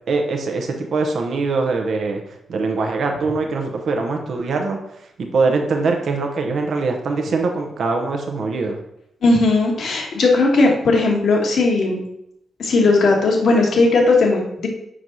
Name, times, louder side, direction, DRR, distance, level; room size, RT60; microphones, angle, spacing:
voice 1, 0.1-2.2 2.5-4.8 5.3-8.8, right 3 dB, 70° right, 3 dB, 0.8 m, -22 dB
voice 2, 9.2-12.0 12.6-14.7, left 3 dB, 70° left, 1 dB, 1.3 m, -17 dB
6.2 x 4.7 x 4.0 m, 0.80 s
cardioid pair, 60°, 0 cm